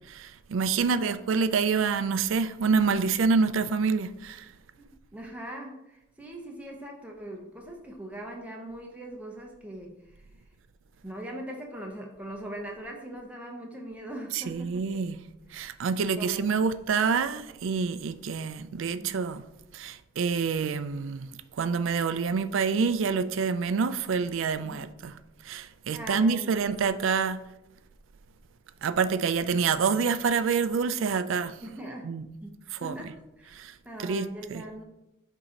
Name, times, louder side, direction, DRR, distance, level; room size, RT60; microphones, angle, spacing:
voice 1, 0.1-4.5 14.3-15.2 15.5-19.4 19.7-21.3 21.6-25.1 25.4-27.4 28.8-31.5 32.0-32.3 32.8-32.9 33.5-33.7 34.0-34.6, right 5 dB, 70° right, 0.4 m, -27 dB
voice 2, 0.7-1.2 4.8-10.0 11.0-14.8 15.5-15.7 16.0-16.6 19.0-19.2 24.6-24.9 25.9-26.9 31.6-32.1 32.4-33.6 33.8-34.8, right 1 dB, 5° right, 0.7 m, -41 dB
6.8 x 2.8 x 5.0 m
head